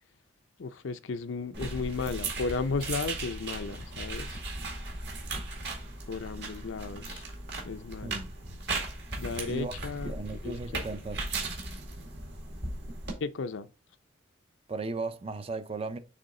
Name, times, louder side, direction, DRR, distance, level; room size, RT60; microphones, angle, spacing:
voice 1, 0.6-4.4 6.1-7.2 7.6-8.2 9.2-10.1 10.4-10.8 13.2-13.7, left 4 dB, 75° left, 0.5 m, -34 dB
sound 1, 1.5-13.1, right 2 dB, 55° right, 1.9 m, -37 dB
voice 2, 8.0-8.3 9.5-11.2 14.7-16.0, right 3 dB, 30° right, 0.4 m, -36 dB
6.7 x 3.8 x 3.7 m
head